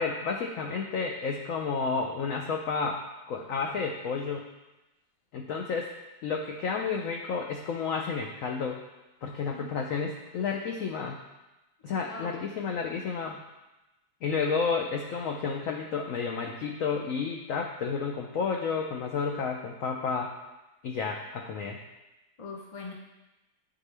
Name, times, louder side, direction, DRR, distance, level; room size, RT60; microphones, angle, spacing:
voice 1, 0.0-4.5 5.3-6.0 6.2-8.8 9.2-11.2 11.8-13.4 14.2-20.3 20.8-21.8, left 5 dB, 80° left, 2 dB, 0.7 m, -31 dB
voice 2, 11.8-12.4 22.4-22.9, left 3 dB, 50° left, 0 dB, 0.4 m, -42 dB
9.6 x 3.8 x 3.3 m, 1.0 s
omnidirectional pair, 2.0 m